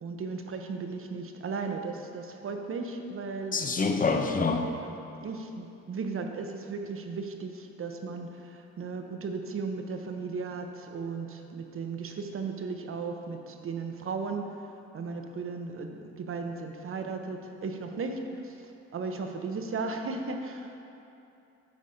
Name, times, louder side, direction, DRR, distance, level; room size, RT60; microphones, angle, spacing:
voice 1, 0.0-3.6 4.8-14.5 14.9-20.7, right 4 dB, 45° right, 5 dB, 0.8 m, -36 dB
voice 2, 3.5-4.7, left 4 dB, 25° left, 4 dB, 0.7 m, -26 dB
9.6 x 4.1 x 5.0 m, 2.8 s
cardioid pair, 90°, 30 cm